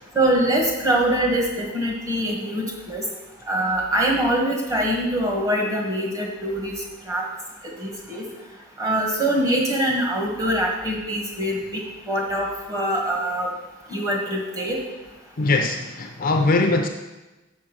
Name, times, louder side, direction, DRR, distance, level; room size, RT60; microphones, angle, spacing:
voice 1, 0.1-3.0 3.5-6.7 7.1-7.2 7.8-8.2 8.8-11.8 12.1-13.5 13.9-14.8, right 1 dB, 15° right, -1 dB, 1.6 m, -23 dB
voice 2, 15.4-16.9, left 2 dB, 40° left, 4 dB, 0.6 m, -21 dB
6.3 x 6.1 x 6.1 m, 1.1 s
head